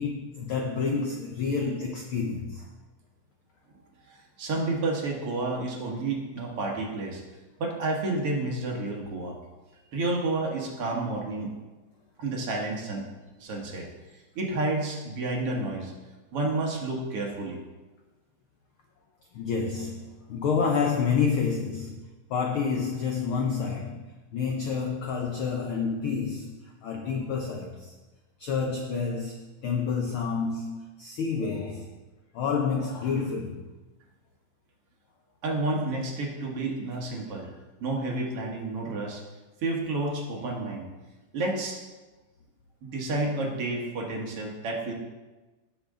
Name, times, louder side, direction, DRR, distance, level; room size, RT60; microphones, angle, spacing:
voice 1, 0.0-2.7 19.3-27.9 28.4-31.9 32.3-33.7, left 5 dB, 80° left, 2 dB, 1.1 m, -29 dB
voice 2, 4.1-7.2 7.6-9.4 9.9-11.5 12.2-13.0 13.4-13.9 14.4-15.9 16.3-17.6 35.4-37.5 37.8-39.2 39.6-40.9 41.3-41.8 42.8-44.9, right 2 dB, 55° right, -1 dB, 2.2 m, -30 dB
17.0 x 6.5 x 3.7 m, 1.2 s
omnidirectional pair, 3.5 m